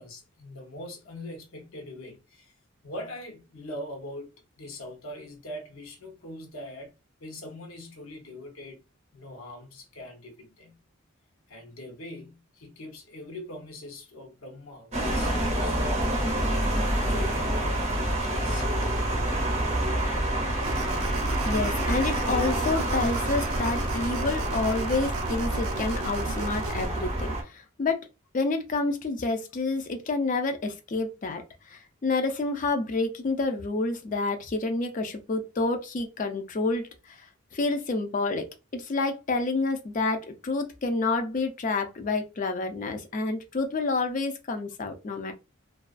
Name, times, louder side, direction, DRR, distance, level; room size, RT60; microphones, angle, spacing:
voice 1, 0.0-2.5 2.8-4.3 4.6-6.9 7.2-8.8 9.1-10.8 11.5-16.5 17.0-18.7, left 1 dB, 75° left, 0.8 m, -42 dB
sound 1, 14.9-27.4, right 1 dB, 35° right, 0.7 m, -27 dB
sound 2, 20.6-26.9, right 4 dB, 90° right, 0.4 m, -36 dB
voice 2, 21.4-28.0 28.3-31.4 31.7-37.2 37.5-38.5 38.7-45.3, left 3 dB, 40° left, 0.4 m, -29 dB
2.3 x 2.3 x 2.4 m
head